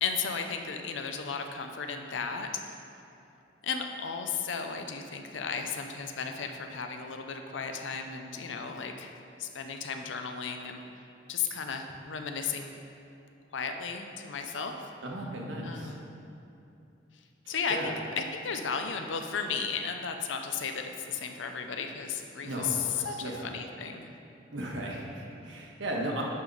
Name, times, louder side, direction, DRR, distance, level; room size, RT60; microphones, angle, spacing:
voice 1, 0.0-2.8 3.6-10.8 11.3-12.7 13.5-14.7 15.6-16.2 17.5-24.1, left 6 dB, 80° left, 5 dB, 0.6 m, -34 dB
voice 2, 15.0-16.0 17.4-17.9 22.4-23.5 24.5-26.2, right 1 dB, 80° right, -2 dB, 1.3 m, -36 dB
10.5 x 3.8 x 5.3 m, 2.7 s
head